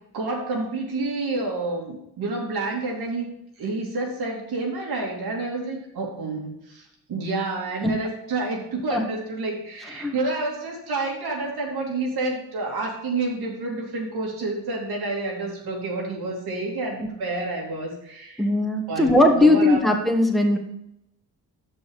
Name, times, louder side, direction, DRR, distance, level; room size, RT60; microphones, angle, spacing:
voice 1, 0.1-3.3 3.6-18.4 18.9-19.8, right 3 dB, 75° right, -2 dB, 2.5 m, -29 dB
voice 2, 18.4-20.6, left 1 dB, ahead, 3 dB, 1.8 m, -19 dB
6.4 x 5.6 x 7.0 m, 0.80 s
supercardioid pair, 55°, 39 cm